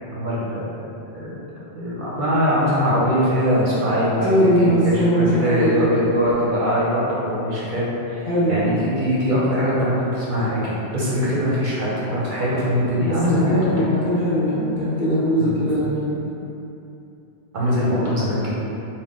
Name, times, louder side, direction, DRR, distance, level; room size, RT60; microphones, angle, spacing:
voice 1, 0.0-0.7 1.1-1.3 1.7-4.2 4.6-13.7 15.4-15.8 17.5-18.5, equal, 55° right, -8 dB, 0.7 m, -22 dB
voice 2, 4.2-5.9 8.3-8.8 13.0-16.1, equal, 55° left, -9 dB, 1.0 m, -20 dB
3.8 x 2.1 x 3.5 m, 2.9 s
omnidirectional pair, 1.1 m